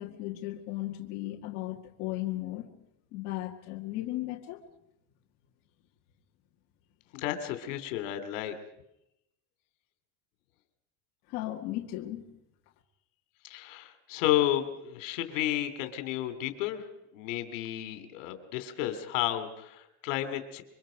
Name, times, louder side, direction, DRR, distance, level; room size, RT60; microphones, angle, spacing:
voice 1, 0.0-2.7 3.1-4.6 11.3-12.2, left 15 dB, 45° left, 0 dB, 2.0 m, -36 dB
voice 2, 7.1-8.5 13.4-16.8 17.1-20.6, left 13 dB, 80° left, 9 dB, 2.9 m, -32 dB
28.0 x 23.5 x 5.1 m, 0.82 s
cardioid pair, 175°, 37 cm